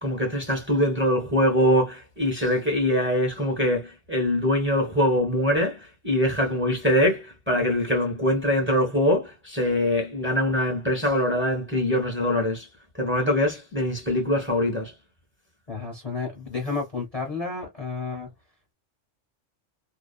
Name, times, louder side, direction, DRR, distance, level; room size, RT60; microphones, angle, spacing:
voice 1, 0.0-12.7 13.0-14.9, equal, 10° right, 1.0 m, -23 dB
voice 2, 15.7-18.3, left 4 dB, 35° left, 0.8 m, -31 dB
2.7 x 2.3 x 2.3 m
omnidirectional pair, 1.3 m